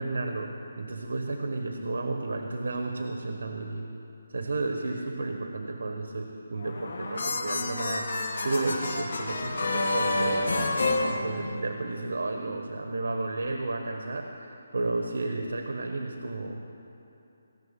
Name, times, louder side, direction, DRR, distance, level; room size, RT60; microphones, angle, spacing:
voice 1, 0.0-3.9 4.3-10.5 11.1-16.6, right 2 dB, 75° right, 4 dB, 1.2 m, -32 dB
sound 1, 6.6-11.9, left 2 dB, 55° left, 1.7 m, -29 dB
17.5 x 6.6 x 9.0 m, 2.9 s
hypercardioid pair, 175°, 0 cm